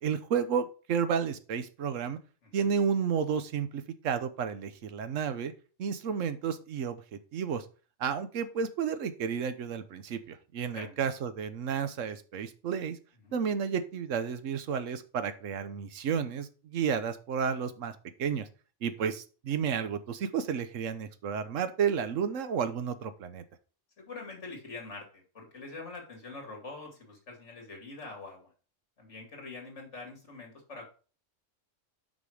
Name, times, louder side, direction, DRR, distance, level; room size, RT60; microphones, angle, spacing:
voice 1, 0.0-2.2 2.5-5.5 5.8-7.6 8.0-13.0 13.3-18.5 18.8-23.4, right 7 dB, 80° right, 11 dB, 1.1 m, -32 dB
voice 2, 2.4-2.7 10.7-11.0 13.2-13.4 24.0-28.5 29.0-30.9, left 3 dB, 65° left, 2 dB, 2.5 m, -44 dB
6.1 x 5.5 x 4.9 m, 0.37 s
omnidirectional pair, 1.3 m